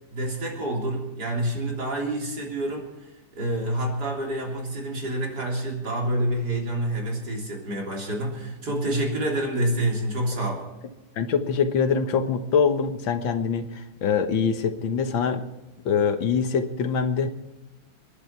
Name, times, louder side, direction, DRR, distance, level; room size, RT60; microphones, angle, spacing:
voice 1, 0.1-2.9 3.3-10.7, right 1 dB, 55° right, -1 dB, 4.0 m, -27 dB
voice 2, 11.2-15.4 15.9-17.3, left 6 dB, 85° left, 8 dB, 2.0 m, -24 dB
29.5 x 10.5 x 4.6 m, 1.0 s
omnidirectional pair, 2.1 m